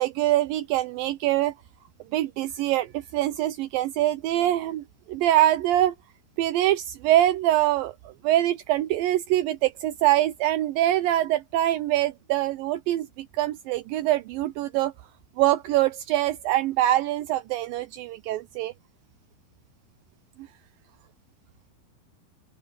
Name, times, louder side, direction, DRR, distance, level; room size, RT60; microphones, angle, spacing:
voice 1, 0.0-1.5 2.1-5.9 6.4-7.9 8.2-14.9 15.4-18.7, right 14 dB, 80° right, 2.2 m, -24 dB
open air
omnidirectional pair, 4.5 m